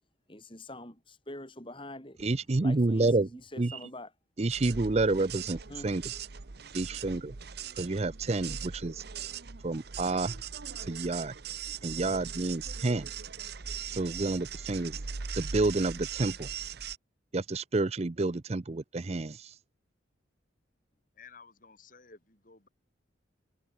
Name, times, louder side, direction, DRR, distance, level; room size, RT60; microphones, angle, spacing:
voice 1, 0.3-2.2 2.6-4.1 5.7-5.9 7.7-7.8 10.3-10.4, left 1 dB, 25° left, 7.2 m, -45 dB
voice 2, 2.2-3.3 3.6-3.8 4.4-6.2 6.7-7.3 7.8-9.0 9.6-10.4 10.9-11.3 11.8-13.1 13.9-15.0 15.3-16.5 17.3-19.5, right 2 dB, 35° right, 0.6 m, -29 dB
sound 1, 4.5-17.0, right 7 dB, 55° right, 0.9 m, -40 dB
voice 3, 21.2-22.7, left 5 dB, 45° left, 2.9 m, -54 dB
head